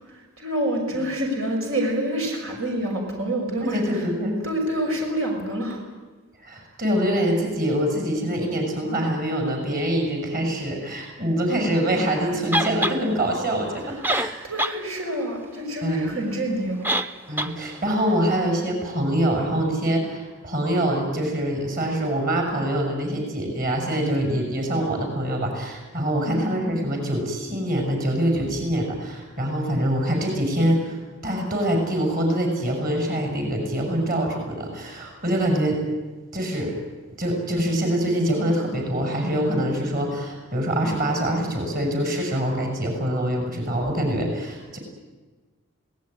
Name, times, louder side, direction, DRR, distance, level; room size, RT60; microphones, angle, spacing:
voice 1, 0.1-4.1 4.4-5.8 13.8-14.0 14.4-16.9 17.4-17.6 26.2-26.4 28.3-28.5, right 1 dB, 75° right, 1 dB, 6.2 m, -27 dB
voice 2, 3.6-4.4 6.4-14.3 15.8-16.2 17.3-35.8 36.3-36.7 37.2-44.8, right 1 dB, 40° right, 2 dB, 6.5 m, -24 dB
sound 1, 12.5-13.0 13.8-13.9 14.0-14.8 15.1-15.2 16.8-17.1 17.4-17.5, right 1 dB, 10° right, 0.7 m, -23 dB
26.5 x 18.5 x 9.8 m, 1.3 s
head